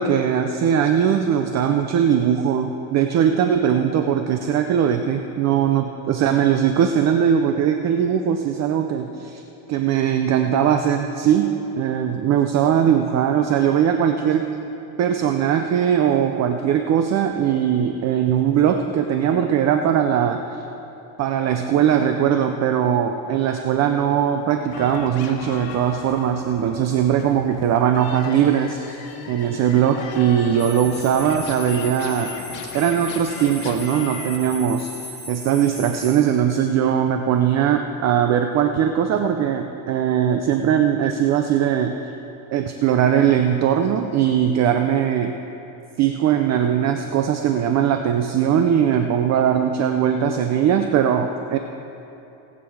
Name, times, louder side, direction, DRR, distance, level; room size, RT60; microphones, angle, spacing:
voice 1, 0.0-9.4 9.7-14.5 15.0-20.6 21.2-32.4 32.7-42.1 42.5-45.4 46.0-51.6, right 9 dB, 40° right, 6 dB, 0.5 m, -20 dB
sound 1, 24.7-34.4, left 5 dB, 70° left, 1.8 m, -37 dB
sound 2, 30.6-36.3, left 3 dB, 20° left, 1.4 m, -37 dB
18.0 x 8.3 x 4.7 m, 2.9 s
cardioid pair, 160°, 44 cm